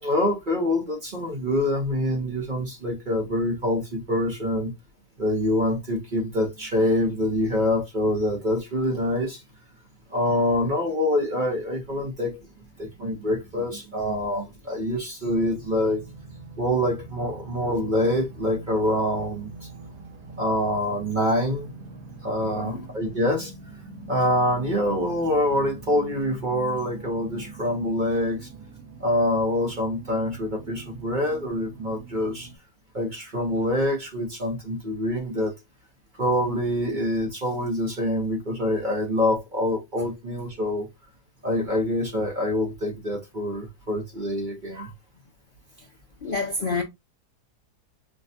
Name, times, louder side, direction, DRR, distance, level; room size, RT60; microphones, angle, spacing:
voice 1, 0.0-4.7 5.2-9.4 10.1-12.4 12.8-16.0 16.6-19.7 20.4-21.7 22.2-23.5 24.1-28.5 29.0-32.5 32.9-35.5 36.2-40.9 41.4-44.9, left 1 dB, 35° right, 0.9 m, -25 dB
sound 1, 15.2-32.6, right 3 dB, 80° right, 1.7 m, -43 dB
voice 2, 22.4-22.9 45.8-45.9 46.2-46.8, left 3 dB, 55° left, 0.6 m, -29 dB
5.8 x 2.3 x 2.6 m
omnidirectional pair, 1.7 m